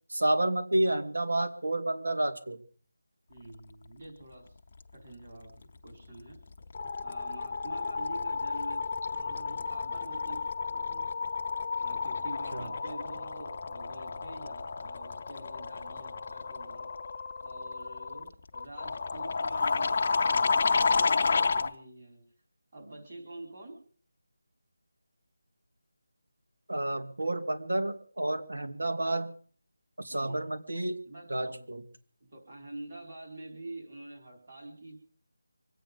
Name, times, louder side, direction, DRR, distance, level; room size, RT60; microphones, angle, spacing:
voice 1, 0.1-2.6 12.5-12.7 26.7-29.3 30.0-31.0 31.3-31.8, right 1 dB, 90° right, 7 dB, 2.6 m, -30 dB
voice 2, 3.3-4.6 4.9-6.4 7.0-11.1 11.8-16.9 17.4-22.2 22.7-23.8 30.1-30.5 31.0-31.7 32.3-35.0, right 2 dB, 30° right, 1 dB, 4.6 m, -47 dB
sound 1, 5.9-6.2 6.5-21.7, left 4 dB, 25° left, 0.7 m, -31 dB
25.0 x 9.0 x 5.4 m, 0.43 s
figure-of-eight pair, 180°, 0 cm